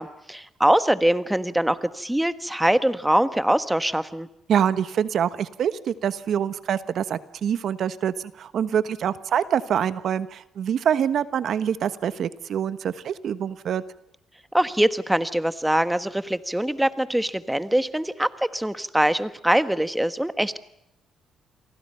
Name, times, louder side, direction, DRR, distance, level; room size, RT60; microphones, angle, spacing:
voice 1, 0.0-4.3 14.5-20.6, right 1 dB, 5° right, 12 dB, 1.4 m, -23 dB
voice 2, 4.5-13.8, right 8 dB, 65° right, 14 dB, 1.2 m, -25 dB
29.0 x 23.5 x 5.7 m, 0.80 s
cardioid pair, 90°, 0 cm